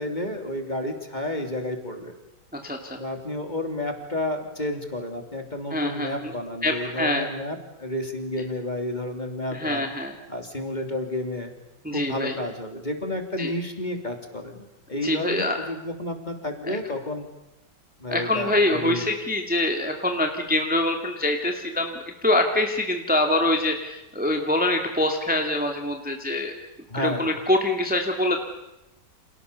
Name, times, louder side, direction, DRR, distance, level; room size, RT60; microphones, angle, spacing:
voice 1, 0.0-2.1 2.9-9.8 10.3-11.6 11.9-14.6 14.9-17.3 18.0-19.0 26.9-27.3, left 1 dB, 25° left, 4 dB, 3.4 m, -31 dB
voice 2, 2.5-3.0 5.7-6.3 6.6-7.3 9.5-10.1 11.8-12.4 13.4-13.5 15.0-15.6 16.6-16.8 18.1-26.5 27.0-28.4, left 1 dB, 5° right, 3 dB, 2.2 m, -25 dB
30.0 x 27.5 x 7.0 m, 0.92 s
omnidirectional pair, 1.9 m